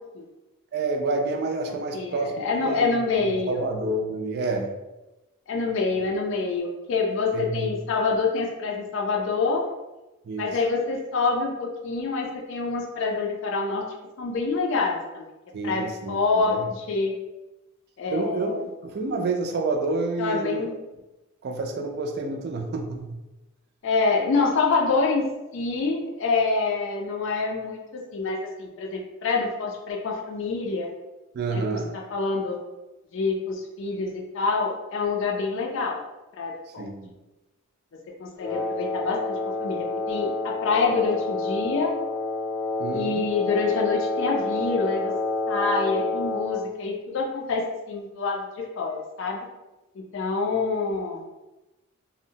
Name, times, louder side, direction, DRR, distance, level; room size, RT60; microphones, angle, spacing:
voice 1, 0.7-4.7 7.3-7.7 10.2-10.6 15.5-16.8 18.1-18.5 18.8-20.7 21.4-23.2 31.3-31.9 36.8-37.2 42.8-43.3, right 3 dB, 50° right, 3 dB, 0.4 m, -29 dB
voice 2, 1.9-3.6 5.5-9.6 10.4-13.8 14.2-15.3 15.6-17.1 18.0-18.6 20.2-20.7 23.8-25.2 25.5-27.8 28.1-30.9 31.5-31.8 32.1-32.6 33.1-36.0 36.4-36.8 38.2-39.2 39.6-41.9 42.9-45.1 45.5-47.6 47.9-49.4 50.1-51.2, left 4 dB, 65° left, 0 dB, 0.4 m, -26 dB
Wind instrument woodwind instrument, 38.4-46.7, left 3 dB, 10° left, 0.7 m, -28 dB
2.6 x 2.1 x 2.7 m, 1.0 s
head